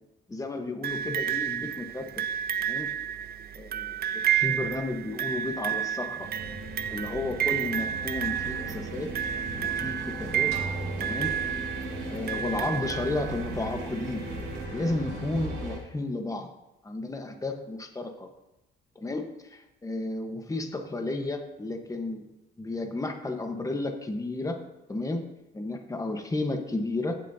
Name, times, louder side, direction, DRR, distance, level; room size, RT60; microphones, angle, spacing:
voice 1, 0.3-2.2 2.6-2.9 3.6-6.3 6.9-9.1 9.6-10.5 11.0-11.4 12.0-14.3 14.7-16.5 16.8-18.3 18.9-22.2 22.6-24.6 24.9-25.2 25.5-27.2, left 2 dB, 15° left, 4 dB, 1.2 m, -32 dB
sound 1, 0.8-13.7 14.6-14.7, right 10 dB, 50° right, 0.5 m, -31 dB
sound 2, 6.2-15.8, right 2 dB, 75° right, 3.3 m, -37 dB
sound 3, 10.5-12.5, right 2 dB, 35° right, 2.5 m, -39 dB
15.0 x 7.1 x 2.8 m, 0.93 s
cardioid pair, 90°, 20 cm